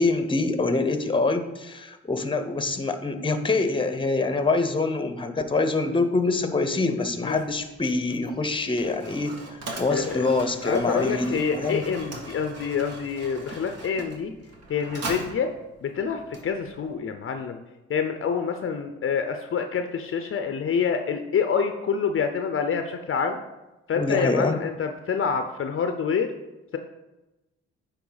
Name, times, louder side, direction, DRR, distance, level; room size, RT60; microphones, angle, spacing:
voice 1, 0.0-9.3 9.8-11.8 23.9-24.6, left 3 dB, 15° left, 8 dB, 0.8 m, -25 dB
Mechanisms, 7.2-16.9, right 2 dB, 55° right, 1.5 m, -40 dB
voice 2, 9.9-10.3 10.6-14.3 14.7-15.5 15.8-17.6 17.9-23.4 23.9-26.3, left 6 dB, 45° left, 7 dB, 0.6 m, -27 dB
9.4 x 3.3 x 4.0 m, 1.0 s
supercardioid pair, 55°, 30 cm